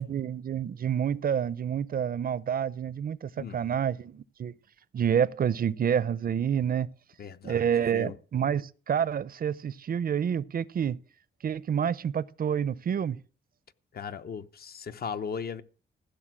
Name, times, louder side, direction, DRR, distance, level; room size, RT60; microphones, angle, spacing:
voice 1, 0.0-4.5 4.9-6.9 7.4-11.0 11.4-13.2, right 8 dB, 50° right, 0.5 m, -28 dB
voice 2, 3.4-3.8 7.2-7.6 7.9-8.2 13.9-15.6, left 6 dB, 50° left, 0.8 m, -37 dB
15.0 x 6.6 x 7.6 m
wide cardioid pair, 130°, 20 cm